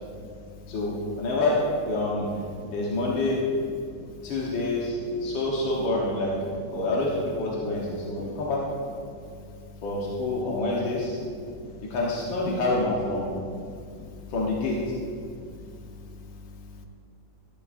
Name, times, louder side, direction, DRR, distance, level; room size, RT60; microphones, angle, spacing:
voice 1, 0.0-0.8 2.6-3.0 3.8-4.3 5.2-5.4 7.6-7.7 8.0-8.4 9.1-9.8 10.4-10.6 10.8-12.0 13.3-14.3 15.2-16.8, left 3 dB, 60° left, 4 dB, 1.2 m, -45 dB
voice 2, 0.7-1.6 1.9-2.4 2.7-3.4 4.2-6.3 6.7-8.6 9.8-11.2 11.8-13.3 14.3-14.8, left 2 dB, 80° left, -4 dB, 1.9 m, -27 dB
15.0 x 9.8 x 2.5 m, 2.3 s
omnidirectional pair, 2.1 m